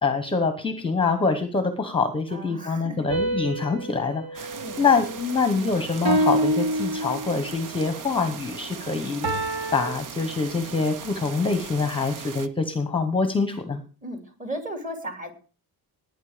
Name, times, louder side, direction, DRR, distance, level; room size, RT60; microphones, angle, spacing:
voice 1, 0.0-13.8, left 4 dB, 15° left, 8 dB, 1.0 m, -25 dB
voice 2, 2.3-3.1 4.5-4.8 14.0-15.3, equal, 20° right, 5 dB, 2.8 m, -35 dB
sound 1, 3.1-5.5 6.0-7.6 9.2-9.9, right 1 dB, 75° right, 3.3 m, -27 dB
sound 2, 4.3-12.5, right 7 dB, 55° right, 1.0 m, -39 dB
18.5 x 9.5 x 5.0 m, 0.39 s
cardioid pair, 175°, 38 cm